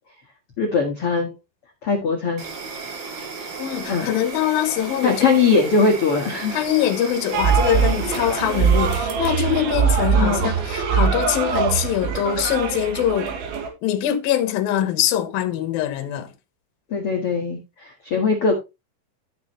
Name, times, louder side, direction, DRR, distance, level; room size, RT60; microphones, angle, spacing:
voice 1, 0.6-1.3 1.8-2.4 3.9-4.1 5.0-6.6 10.1-10.5 16.9-18.5, left 4 dB, 85° left, 1.2 m, -20 dB
Insect, 2.4-9.0, right 4 dB, 55° right, 4.2 m, -34 dB
voice 2, 3.6-5.2 6.5-13.3 13.8-16.3, left 11 dB, 65° left, 2.5 m, -23 dB
sound 1, 7.3-13.7, right 6 dB, 75° right, 4.2 m, -22 dB
13.0 x 6.3 x 3.1 m
omnidirectional pair, 5.4 m